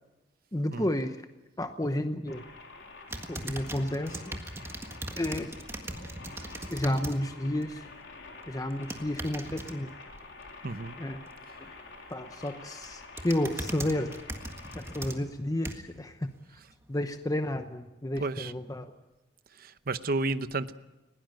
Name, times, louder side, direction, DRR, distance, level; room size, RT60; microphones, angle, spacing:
voice 1, 0.5-1.2 1.6-2.4 3.3-4.4 5.2-5.5 6.7-7.9 8.5-9.9 11.0-11.2 12.1-14.2 14.7-16.3 16.9-18.9, left 1 dB, 20° left, 7 dB, 0.9 m, -31 dB
sound 1, 2.3-15.1, left 3 dB, 85° left, 3.7 m, -48 dB
sound 2, 3.1-7.2 7.6-7.9 8.7-9.7 12.1-12.5 12.8-16.0 16.6-16.7, right 1 dB, 15° right, 1.7 m, -39 dB
voice 2, 10.6-11.0 18.2-18.5 19.6-20.7, right 2 dB, 55° right, 12 dB, 0.9 m, -32 dB
20.0 x 18.0 x 9.1 m, 1.0 s
head